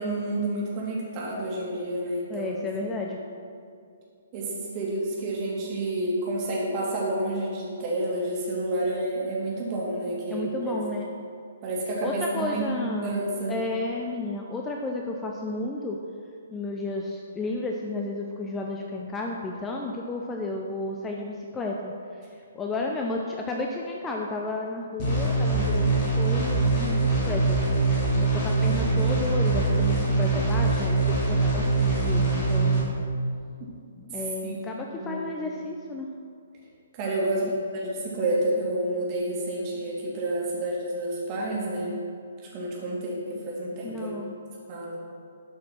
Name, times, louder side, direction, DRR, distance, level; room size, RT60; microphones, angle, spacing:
voice 1, 0.0-2.5 3.1-3.2 4.3-10.7 11.6-13.6 34.1-34.5 34.8-35.3 36.9-42.0 42.5-44.1 44.7-45.0, right 1 dB, 30° right, -5 dB, 3.1 m, -29 dB
voice 2, 2.3-3.2 10.3-11.1 12.0-13.1 13.5-16.0 16.5-21.9 22.5-27.6 28.2-33.0 34.0-36.1 37.2-37.5 43.8-44.3, left 2 dB, 15° left, 1 dB, 0.7 m, -32 dB
sound 1, 25.0-32.8, right 3 dB, 35° left, 3.2 m, -23 dB
12.5 x 6.1 x 6.1 m, 2.3 s
figure-of-eight pair, 125°, 0 cm